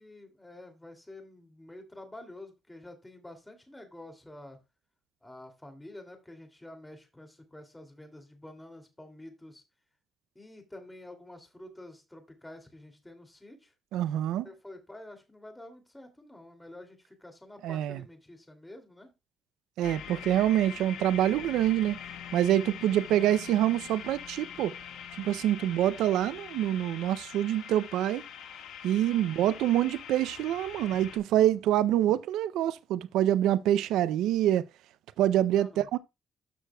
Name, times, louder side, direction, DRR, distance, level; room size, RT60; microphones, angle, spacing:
voice 1, 0.0-4.6 5.2-9.6 10.3-13.7 14.4-19.1 35.5-35.9, left 1 dB, 10° left, 2.5 m, -49 dB
voice 2, 13.9-14.5 17.6-18.0 19.8-22.0 22.3-24.7 25.2-28.2 28.8-34.7 35.2-36.0, right 12 dB, 90° right, 0.4 m, -26 dB
sound 1, 19.8-31.2, left 9 dB, 85° left, 1.6 m, -43 dB
13.0 x 6.2 x 2.2 m
cardioid pair, 90°, 0 cm